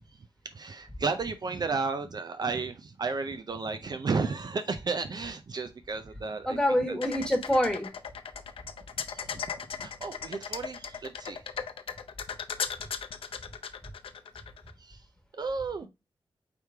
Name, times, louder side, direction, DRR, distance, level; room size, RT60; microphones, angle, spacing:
voice 1, 0.5-6.6 6.9-7.0 9.1-9.4 9.8-11.4 14.8-15.1 15.3-15.9, right 4 dB, 50° right, 0.4 m, -33 dB
voice 2, 6.4-7.9 15.8-15.9, equal, 10° left, 1.3 m, -26 dB
sound 1, 7.0-14.7, left 7 dB, 85° left, 0.5 m, -37 dB
5.0 x 3.1 x 3.3 m
wide cardioid pair, 110°, 9 cm